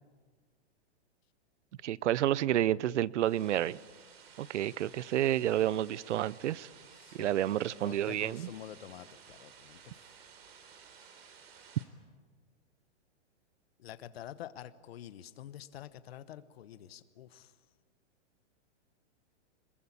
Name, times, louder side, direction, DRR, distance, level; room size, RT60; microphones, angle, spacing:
voice 1, 1.8-3.8 4.4-6.7 7.1-8.5, right 12 dB, 85° right, 0.7 m, -30 dB
sound 1, 3.2-11.9, right 6 dB, 60° right, 3.7 m, -55 dB
voice 2, 6.9-7.3 7.8-9.8 13.8-17.5, left 11 dB, 60° left, 1.1 m, -47 dB
22.0 x 21.5 x 8.6 m
supercardioid pair, 170°, 35 cm